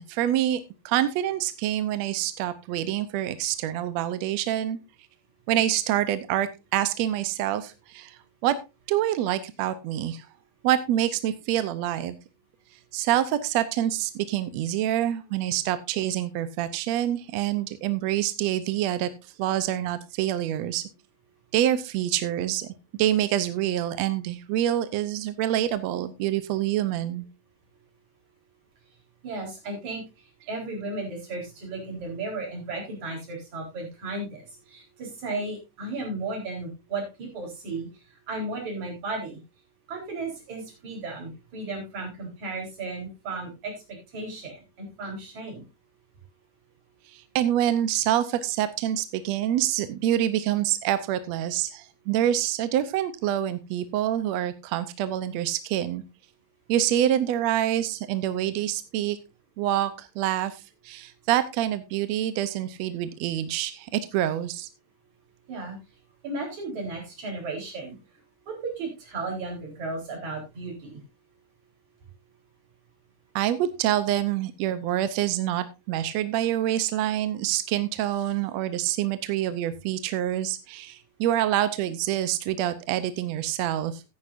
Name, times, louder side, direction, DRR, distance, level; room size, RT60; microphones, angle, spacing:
voice 1, 0.0-4.8 5.5-8.6 8.9-10.3 10.6-12.2 12.9-19.1 19.4-20.8 21.5-22.7 23.0-27.3 47.1-56.0 56.7-59.2 59.6-64.7 73.4-84.0, right 12 dB, 75° right, 12 dB, 1.7 m, -26 dB
voice 2, 29.2-30.0 30.5-37.9 38.3-39.4 39.9-45.6 65.5-65.8 66.2-67.9 68.5-71.0, right 3 dB, 55° right, 1 dB, 5.3 m, -34 dB
14.5 x 9.6 x 2.6 m, 0.25 s
omnidirectional pair, 3.9 m